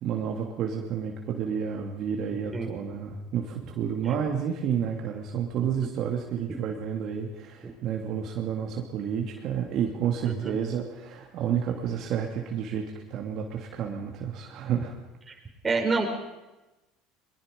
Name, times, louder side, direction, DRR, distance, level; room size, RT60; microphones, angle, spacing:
voice 1, 0.0-14.9, right 8 dB, 55° right, 1 dB, 2.6 m, -30 dB
voice 2, 10.2-10.5 15.6-16.1, right 4 dB, 20° right, 2 dB, 5.1 m, -27 dB
22.5 x 22.0 x 5.3 m, 1.0 s
supercardioid pair, 100°, 0 cm